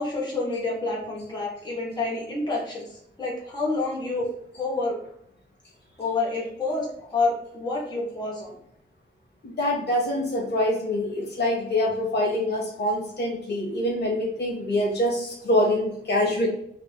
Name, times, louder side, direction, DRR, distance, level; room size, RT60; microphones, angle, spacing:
voice 1, 0.0-2.9 3.2-4.3 4.5-5.0 6.0-8.5, left 3 dB, 25° left, -5 dB, 1.3 m, -28 dB
voice 2, 9.4-16.5, left 1 dB, 70° left, -3 dB, 1.4 m, -25 dB
3.8 x 2.8 x 3.9 m, 0.73 s
wide cardioid pair, 150°, 18 cm